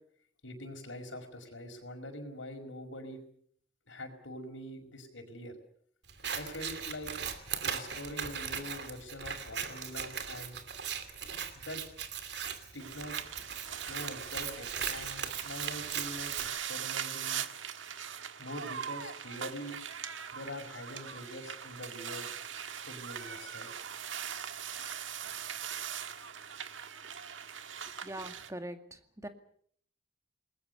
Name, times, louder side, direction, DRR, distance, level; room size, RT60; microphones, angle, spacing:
voice 1, 0.4-3.2 3.9-5.6 6.3-7.1 7.6-10.6 11.6-11.8 12.7-13.2 13.9-17.4 18.4-19.8 20.3-22.3 22.7-23.7, left 1 dB, 85° left, 4 dB, 5.5 m, -44 dB
Scissors, 6.1-16.5, right 7 dB, 60° right, 2.8 m, -39 dB
sound 1, 12.8-28.5, right 8 dB, 85° right, 1.6 m, -41 dB
voice 2, 27.9-29.3, right 1 dB, 15° right, 7 dB, 2.1 m, -42 dB
28.0 x 20.5 x 6.9 m, 0.63 s
head